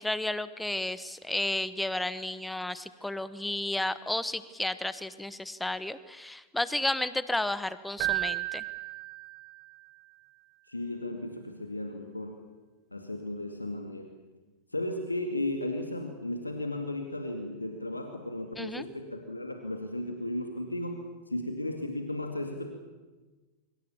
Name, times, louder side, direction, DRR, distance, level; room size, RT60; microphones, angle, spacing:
voice 1, 0.0-8.6 18.6-18.8, left 1 dB, 5° left, 15 dB, 1.2 m, -32 dB
Keyboard (musical), 8.0-9.8, right 17 dB, 35° right, 1.0 m, -33 dB
voice 2, 10.7-12.4 12.9-14.1 14.7-22.7, left 1 dB, 85° left, 5 dB, 2.4 m, -35 dB
25.5 x 25.0 x 7.3 m, 1.2 s
figure-of-eight pair, 90°, 0 cm